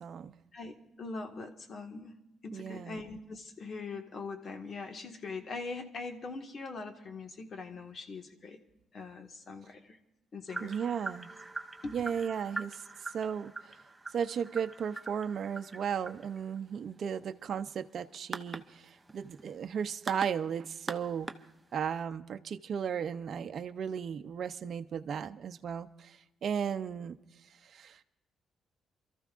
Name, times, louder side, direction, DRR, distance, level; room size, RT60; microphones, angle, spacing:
voice 1, 0.0-0.3 2.5-3.0 10.6-11.3 11.9-12.8 13.1-13.7 14.1-21.3 21.7-27.2 27.6-28.0, right 7 dB, 60° right, 8 dB, 0.6 m, -35 dB
voice 2, 0.5-8.6 8.9-10.0 10.3-10.7 11.8-12.0, left 3 dB, 50° left, 5 dB, 1.7 m, -42 dB
sound 1, 10.5-22.0, right 3 dB, 15° right, 0.8 m, -44 dB
28.5 x 14.0 x 2.5 m, 0.90 s
cardioid pair, 90°, 0 cm